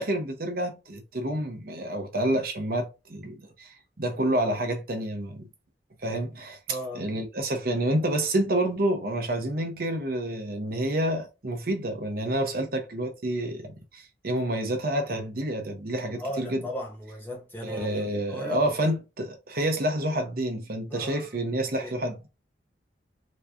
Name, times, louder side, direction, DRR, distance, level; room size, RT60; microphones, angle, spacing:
voice 1, 0.0-5.5 6.0-6.6 6.9-16.6 17.6-22.3, right 1 dB, 55° right, 0.9 m, -28 dB
voice 2, 6.7-7.1 16.2-18.8 20.9-21.4 21.8-21.9, equal, 10° left, 1.4 m, -37 dB
3.4 x 3.2 x 2.6 m
head